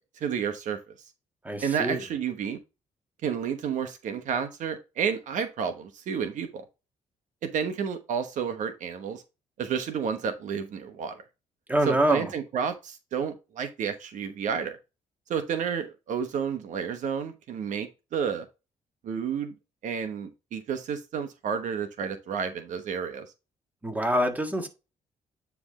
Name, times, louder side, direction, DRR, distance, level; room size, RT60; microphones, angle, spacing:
voice 1, 0.2-0.8 1.6-2.6 3.2-6.6 7.4-9.2 9.6-11.2 11.8-14.8 15.3-18.4 19.0-19.5 19.8-23.3, right 7 dB, 75° right, 1.1 m, -31 dB
voice 2, 1.4-2.0 11.7-12.3 23.8-24.7, right 1 dB, 10° right, 1.7 m, -25 dB
9.5 x 3.5 x 3.7 m
cardioid pair, 100°, 13 cm